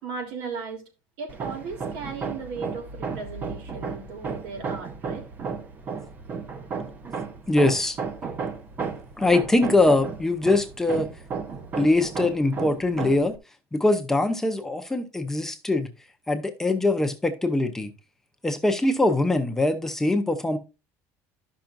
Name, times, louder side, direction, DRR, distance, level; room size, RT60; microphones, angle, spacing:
voice 1, 0.0-0.8 1.2-5.2, right 5 dB, 80° right, 3.2 m, -36 dB
Hammer, 1.3-13.4, right 5 dB, 25° right, 0.7 m, -34 dB
voice 2, 7.5-8.0 9.2-11.1 11.8-13.3 13.7-15.9 16.3-17.9 18.4-20.6, left 2 dB, 5° left, 0.6 m, -22 dB
12.5 x 5.9 x 2.5 m
cardioid pair, 165°, 6 cm